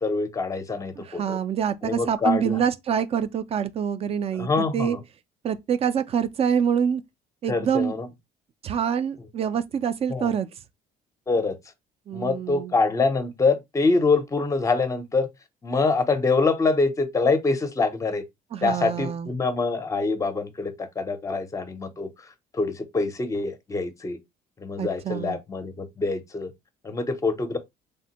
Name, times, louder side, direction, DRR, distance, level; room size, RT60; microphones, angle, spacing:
voice 1, 0.0-1.4 1.8-2.6 4.3-5.0 7.5-8.1 10.1-10.3 11.3-11.6 12.1-15.3 15.6-18.2 18.6-22.1 22.5-24.2 24.6-26.5 26.8-27.6, left 3 dB, 20° left, 0.5 m, -25 dB
voice 2, 1.0-5.0 5.4-7.0 7.4-7.9 8.6-10.5 12.1-12.7 18.5-19.3 24.8-25.4, right 8 dB, 35° right, 0.4 m, -26 dB
3.4 x 2.1 x 2.8 m
cardioid pair, 110°, 17 cm